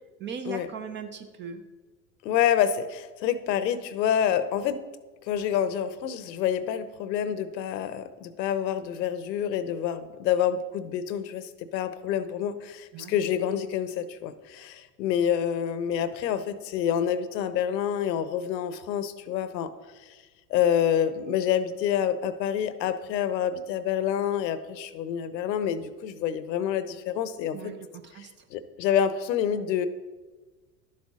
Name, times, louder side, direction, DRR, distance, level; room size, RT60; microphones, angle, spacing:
voice 1, 0.2-1.6 12.9-13.1 27.5-28.3, right 6 dB, 25° right, 8 dB, 0.4 m, -38 dB
voice 2, 2.2-4.8 5.3-19.7 20.5-27.7 28.5-29.9, left 9 dB, 80° left, 13 dB, 0.7 m, -27 dB
11.5 x 7.4 x 2.4 m, 1.3 s
hypercardioid pair, 85°, 50 cm